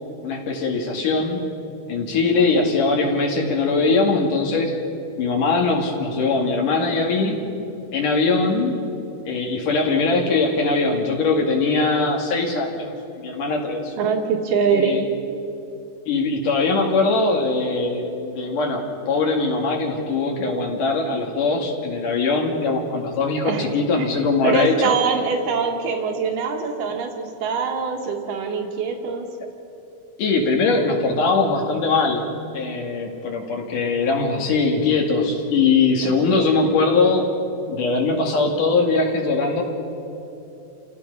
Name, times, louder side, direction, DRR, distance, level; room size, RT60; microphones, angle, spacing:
voice 1, 0.2-1.5 1.9-4.7 5.2-7.4 7.9-8.8 9.3-12.9 13.2-13.9 14.7-15.0 16.1-24.9 30.2-32.3 32.5-37.3 37.7-39.6, left 3 dB, 75° left, 1 dB, 3.9 m, -21 dB
voice 2, 14.0-15.0 23.4-23.7 23.9-24.1 24.4-29.3 36.0-36.5, right 5 dB, 90° right, 3 dB, 3.3 m, -24 dB
29.5 x 17.0 x 5.5 m, 2.9 s
omnidirectional pair, 3.7 m